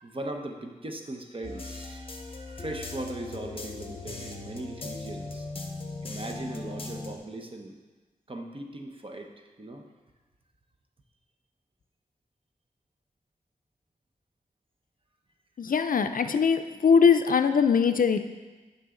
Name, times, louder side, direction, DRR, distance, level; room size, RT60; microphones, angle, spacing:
voice 1, 0.0-5.5 6.0-7.8 8.3-9.8, right 1 dB, 35° right, 3 dB, 0.9 m, -39 dB
sound 1, 1.4-7.2, left 3 dB, 40° left, 0.8 m, -39 dB
voice 2, 15.6-18.2, left 6 dB, 65° left, 8 dB, 0.4 m, -21 dB
9.8 x 5.5 x 3.8 m, 1.3 s
wide cardioid pair, 95°, 15 cm